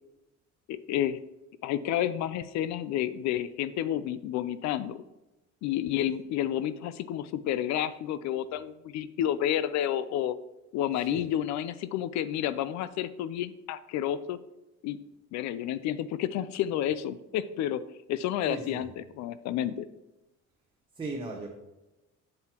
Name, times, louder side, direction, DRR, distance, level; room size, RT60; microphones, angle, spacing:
voice 1, 0.7-1.2 1.6-5.0 5.6-10.4 10.7-14.4 14.8-15.0 15.3-17.8 18.1-19.9, left 11 dB, 70° left, 14 dB, 0.4 m, -30 dB
voice 2, 18.5-18.9 21.0-21.5, right 3 dB, 15° right, 0 dB, 0.7 m, -37 dB
7.7 x 7.5 x 2.9 m, 1.0 s
cardioid pair, 165°, 29 cm